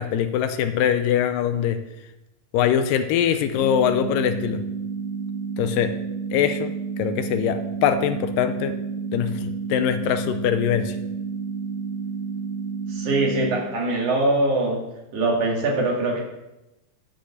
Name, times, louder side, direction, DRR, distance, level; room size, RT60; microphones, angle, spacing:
voice 1, 0.0-1.8 2.5-4.6 5.6-5.9 6.3-6.7 7.0-8.8 9.1-11.0, left 9 dB, 80° left, 9 dB, 2.3 m, -22 dB
sound 1, 3.5-13.5, right 5 dB, 85° right, 5.4 m, -30 dB
voice 2, 12.9-14.8 15.1-16.2, right 2 dB, 65° right, -1 dB, 3.3 m, -22 dB
10.5 x 5.2 x 7.2 m, 0.93 s
omnidirectional pair, 4.0 m